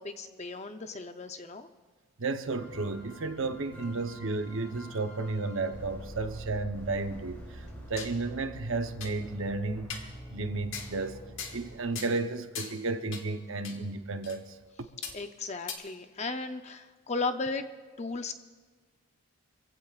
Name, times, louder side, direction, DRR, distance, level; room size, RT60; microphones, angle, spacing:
voice 1, 0.0-1.7 15.1-17.7 18.0-18.3, left 3 dB, 30° left, 8 dB, 0.6 m, -35 dB
voice 2, 2.2-11.2 11.5-14.6, right 3 dB, 60° right, 8 dB, 0.8 m, -33 dB
sound 1, 2.5-12.3 13.8-14.0 14.5-14.6, equal, 10° left, 3.1 m, -47 dB
sound 2, 8.0-8.2 8.6-8.7 9.0-9.1 9.9-10.1 10.7-10.9 11.4-11.7 12.0-12.2 12.5-12.8 13.1-13.3 13.6-13.8 14.2-14.4 15.0-15.2 15.7-15.8, left 6 dB, 55° left, 1.4 m, -39 dB
25.5 x 15.5 x 2.4 m, 1.4 s
head